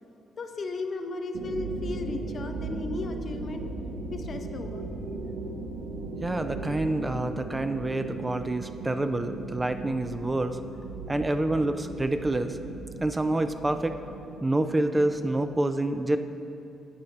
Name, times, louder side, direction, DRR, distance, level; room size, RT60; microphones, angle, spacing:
voice 1, 0.4-3.7 4.1-4.8, left 3 dB, 45° left, 6 dB, 0.6 m, -35 dB
sound 1, 1.3-15.6, right 2 dB, 80° right, 0.7 m, -37 dB
voice 2, 6.2-10.6 11.1-12.6 13.0-14.0 14.4-16.2, right 2 dB, 15° right, 9 dB, 0.3 m, -27 dB
12.5 x 7.7 x 2.9 m, 2.7 s
cardioid pair, 90°, 0 cm